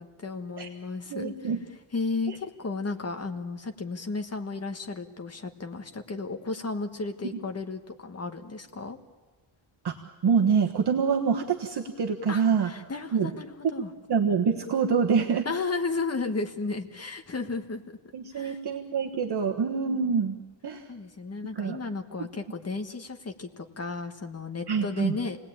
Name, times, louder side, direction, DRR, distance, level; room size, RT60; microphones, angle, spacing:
voice 1, 0.0-1.5 1.9-9.0 12.3-13.9 15.4-17.8 18.3-18.6 19.8-20.1 20.9-25.4, left 3 dB, 30° left, 5 dB, 1.5 m, -34 dB
voice 2, 1.1-1.6 2.3-2.4 9.8-9.9 10.2-12.7 13.1-13.3 14.1-15.5 18.1-20.4 20.6-20.9 21.5-21.8 24.7-25.2, right 6 dB, 50° right, 2 dB, 1.4 m, -25 dB
28.5 x 19.0 x 8.8 m, 1.4 s
wide cardioid pair, 175°, 49 cm